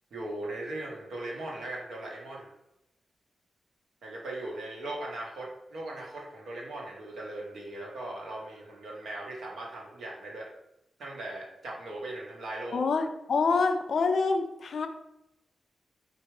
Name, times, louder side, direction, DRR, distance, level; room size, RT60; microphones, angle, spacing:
voice 1, 0.1-2.5 4.0-10.5 11.0-12.8, right 2 dB, 80° right, -1 dB, 1.1 m, -39 dB
voice 2, 12.7-14.9, left 4 dB, 70° left, 8 dB, 0.4 m, -26 dB
4.3 x 2.4 x 4.8 m, 0.84 s
cardioid pair, 60°, 0 cm